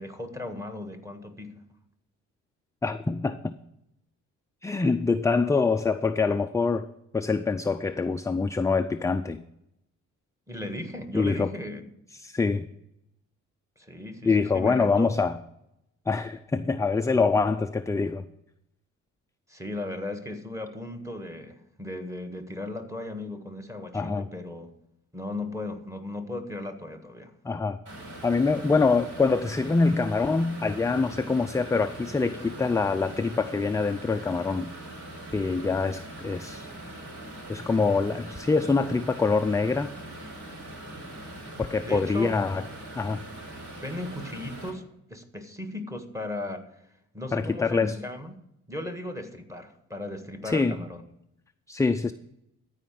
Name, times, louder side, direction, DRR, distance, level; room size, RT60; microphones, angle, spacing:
voice 1, 0.0-1.5 10.5-11.8 13.8-15.1 19.5-24.7 25.1-27.3 41.8-42.3 43.8-44.8 45.1-46.9 47.1-48.4 48.7-51.0, left 1 dB, 10° right, 6 dB, 1.6 m, -36 dB
voice 2, 2.8-3.5 4.6-6.9 7.1-9.4 11.1-11.5 12.2-12.7 14.2-15.4 16.1-18.2 23.9-24.3 27.4-27.8 28.2-34.7 35.3-36.7 37.5-39.9 41.6-42.6 43.0-43.2 47.3-48.0 50.4-50.8 51.7-52.1, left 4 dB, 10° left, 8 dB, 0.4 m, -25 dB
sound 1, 27.9-44.7, right 1 dB, 70° right, 4.2 m, -42 dB
13.5 x 5.0 x 7.6 m, 0.80 s
cardioid pair, 90°, 30 cm